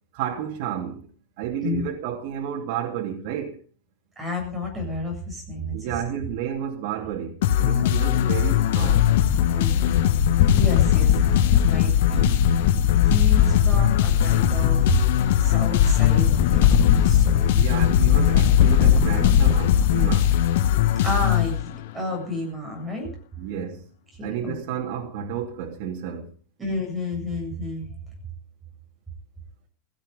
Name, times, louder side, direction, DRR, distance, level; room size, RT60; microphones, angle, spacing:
voice 1, 0.1-1.1 1.4-3.6 5.7-9.1 17.5-20.3 23.4-23.9 24.2-26.3, right 9 dB, 60° right, 3.1 m, -31 dB
voice 2, 4.2-5.9 7.7-7.9 9.5-10.0 10.5-12.4 13.0-17.5 21.0-21.7 21.9-23.1 24.1-24.6 26.6-27.9, left 1 dB, 10° right, 7.7 m, -31 dB
sound 1, 7.4-22.0, left 11 dB, 85° left, 1.6 m, -21 dB
sound 2, 8.7-20.3, left 8 dB, 45° left, 2.0 m, -21 dB
17.5 x 15.0 x 5.4 m
supercardioid pair, 170°, 0 cm